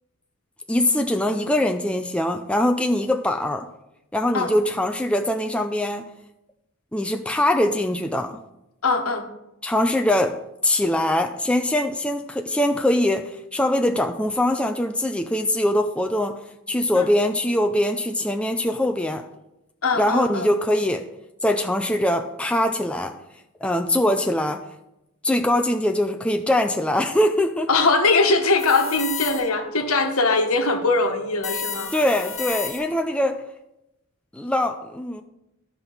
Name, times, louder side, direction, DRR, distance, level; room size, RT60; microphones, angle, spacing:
voice 1, 0.7-3.7 4.1-6.1 6.9-8.4 9.6-16.4 16.7-19.2 20.0-21.1 21.4-23.1 23.6-24.7 25.2-27.7 31.9-33.4 34.3-35.2, left 1 dB, 5° left, 0.4 m, -22 dB
voice 2, 8.8-9.3 16.9-17.1 19.8-20.5 27.7-31.9, left 3 dB, 75° left, 1.2 m, -21 dB
sound 1, 28.6-29.7 31.4-33.1, left 6 dB, 30° left, 1.7 m, -32 dB
12.5 x 6.0 x 4.0 m
head